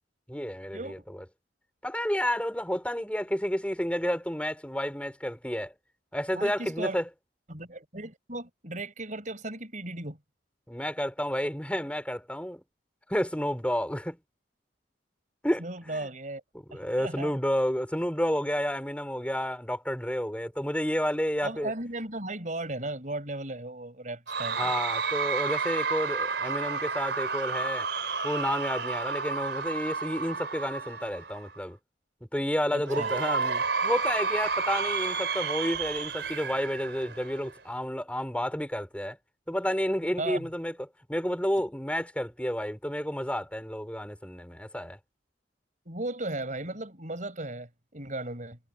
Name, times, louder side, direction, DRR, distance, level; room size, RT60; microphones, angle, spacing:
voice 1, 0.3-1.2 1.8-5.7 6.1-7.1 10.7-12.6 13.1-14.2 15.4-16.1 16.7-21.7 24.6-27.9 28.2-31.8 32.3-39.2 39.5-40.7 41.1-45.0, equal, 5° left, 5.6 m, -30 dB
voice 2, 6.3-7.0 7.5-10.2 15.6-16.4 16.7-17.3 21.4-24.7 32.7-33.1 40.2-40.5 45.8-48.6, right 2 dB, 40° right, 6.7 m, -36 dB
Cheering / Crowd, 24.3-31.6 32.8-37.6, right 5 dB, 65° right, 4.4 m, -31 dB
head